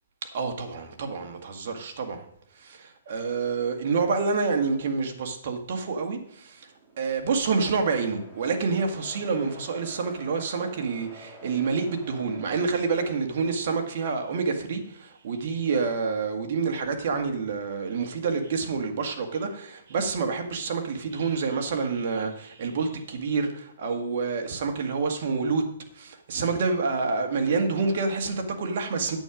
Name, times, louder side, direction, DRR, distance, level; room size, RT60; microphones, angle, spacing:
voice 1, 0.3-2.2 2.6-6.7 7.0-25.6 25.9-29.2, right 4 dB, 55° right, 4 dB, 1.8 m, -28 dB
sound 1, 6.5-13.5, left 1 dB, 5° right, 2.6 m, -50 dB
9.0 x 8.4 x 5.0 m, 0.70 s
hypercardioid pair, 155°, 0 cm